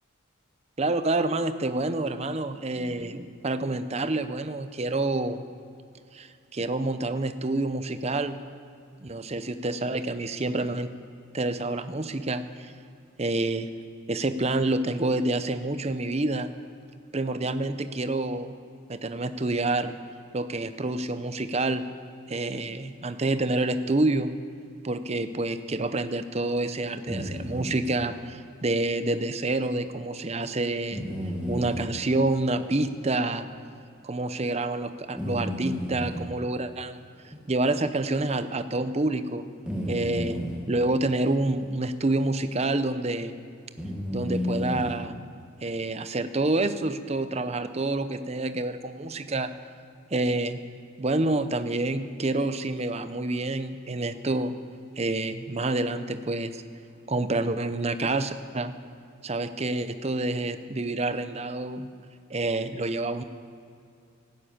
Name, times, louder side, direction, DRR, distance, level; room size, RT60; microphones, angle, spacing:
voice 1, 0.8-5.4 6.1-8.4 9.0-10.9 11.3-12.7 13.2-13.7 14.1-16.5 17.1-18.6 18.9-20.0 20.3-21.8 22.3-24.3 24.8-31.0 31.5-33.4 34.0-39.5 39.9-40.4 40.7-43.3 44.1-45.2 45.6-49.5 50.1-50.6 51.0-54.5 55.0-56.6 57.1-58.7 59.2-61.9 62.3-63.2, right 2 dB, 30° right, 11 dB, 0.6 m, -28 dB
sound 1, 27.1-27.8 29.7-29.8 30.9-31.9 32.6-32.7 33.3-33.4 35.2-36.3 37.3-37.4 37.9-38.0 39.7-40.6 41.6-41.7 42.6-42.8 43.8-45.0, equal, 5° right, 1.5 m, -32 dB
12.5 x 11.5 x 8.8 m, 2.4 s
head